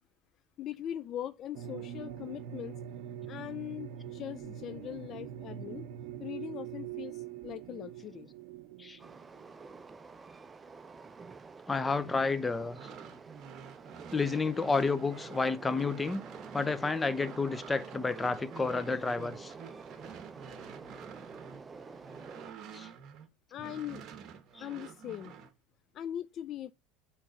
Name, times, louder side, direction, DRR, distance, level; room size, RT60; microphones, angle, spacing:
voice 1, 0.6-2.8 3.3-5.9 6.2-8.3 23.5-24.0 24.6-25.3 25.9-26.7, left 11 dB, 50° left, 0.4 m, -40 dB
sound 1, 1.5-9.7, right 10 dB, 75° right, 0.8 m, -43 dB
Train, 9.0-22.5, right 4 dB, 20° right, 0.5 m, -49 dB
voice 2, 11.7-12.8 14.1-16.2 16.5-19.5 22.7-22.9, left 4 dB, 15° left, 0.7 m, -30 dB
sound 2, 12.6-23.3 23.6-25.5, right 7 dB, 50° right, 1.1 m, -49 dB
8.6 x 3.3 x 4.8 m
hypercardioid pair, 95°, 0 cm